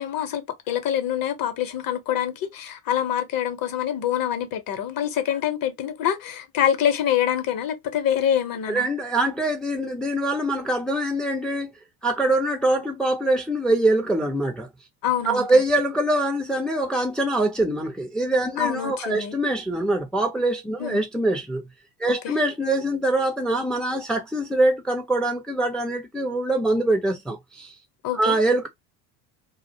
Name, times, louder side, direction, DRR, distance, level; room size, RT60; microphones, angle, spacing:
voice 1, 0.0-8.9 15.0-15.6 18.6-19.3 20.8-21.1 22.1-22.4 28.0-28.4, left 10 dB, 45° left, 0.7 m, -26 dB
voice 2, 8.7-11.7 12.0-14.7 15.3-21.6 22.0-27.7 28.1-28.7, right 1 dB, ahead, 0.3 m, -23 dB
2.4 x 2.0 x 2.6 m
supercardioid pair, 85°, 49 cm